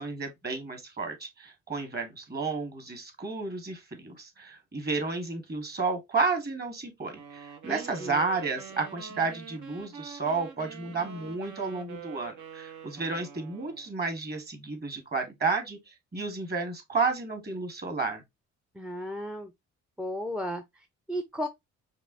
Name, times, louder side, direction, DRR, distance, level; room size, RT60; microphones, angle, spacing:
voice 1, 0.0-18.2, right 4 dB, 35° right, 1.5 m, -32 dB
sound 1, 7.1-13.9, right 7 dB, 70° right, 1.0 m, -45 dB
voice 2, 7.7-8.2 18.7-19.5 20.0-21.5, equal, 5° right, 0.5 m, -35 dB
5.3 x 2.4 x 2.7 m
cardioid pair, 90°, 30 cm